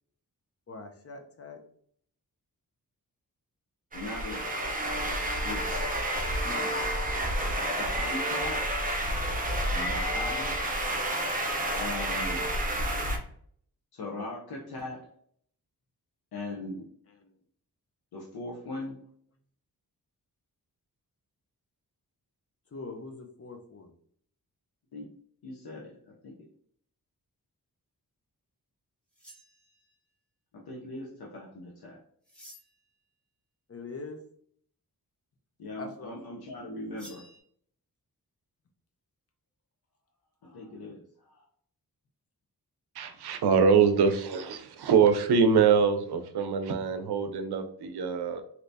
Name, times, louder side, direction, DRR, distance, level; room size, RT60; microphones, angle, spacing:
voice 1, 0.7-1.6 6.4-6.8 10.2-10.6 17.1-17.4 22.7-23.9 33.7-34.2 35.8-36.2, left 3 dB, 40° left, 5 dB, 0.7 m, -43 dB
voice 2, 3.9-4.4 5.4-5.8 7.7-8.6 9.7-10.4 11.7-12.5 13.9-15.0 16.3-16.9 18.1-19.0 24.9-25.1 25.4-26.3 30.5-32.0 35.6-37.2 40.4-41.4, left 2 dB, 75° left, -3 dB, 0.8 m, -39 dB
sound 1, 3.9-13.2, right 1 dB, 20° right, 0.6 m, -30 dB
Laughter, 6.5-10.5, left 1 dB, 20° left, 1.3 m, -50 dB
sound 2, 29.1-30.1 32.2-32.9 37.0-37.4, equal, 5° left, 1.5 m, -52 dB
voice 3, 42.9-48.4, right 6 dB, 85° right, 8 dB, 0.5 m, -24 dB
3.2 x 2.8 x 2.6 m, 0.63 s
cardioid pair, 60°, 38 cm